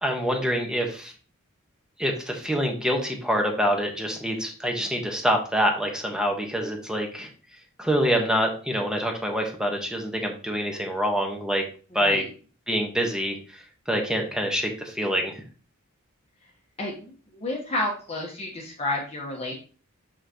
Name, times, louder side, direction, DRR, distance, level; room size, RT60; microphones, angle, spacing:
voice 1, 0.0-1.1 2.0-7.3 7.8-11.6 11.9-12.2 12.7-13.4 13.9-15.4, equal, 5° right, 2 dB, 1.1 m, -26 dB
voice 2, 16.8-19.5, left 2 dB, 30° left, -2 dB, 1.1 m, -31 dB
6.4 x 5.8 x 2.9 m, 0.38 s
head